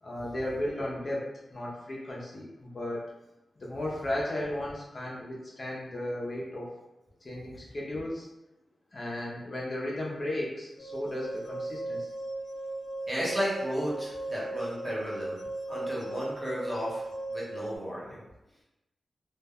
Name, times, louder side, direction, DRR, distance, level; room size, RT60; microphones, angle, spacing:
voice 1, 0.0-3.0 3.6-6.8 7.2-8.3 8.9-12.1, left 1 dB, 35° left, -4 dB, 0.5 m, -35 dB
sound 1, 10.8-17.8, right 2 dB, 90° left, 0.5 m, -37 dB
voice 2, 13.1-15.4 15.7-18.2, equal, 15° right, -6 dB, 0.8 m, -34 dB
2.2 x 2.0 x 3.4 m, 0.97 s
wide cardioid pair, 130°, 0 cm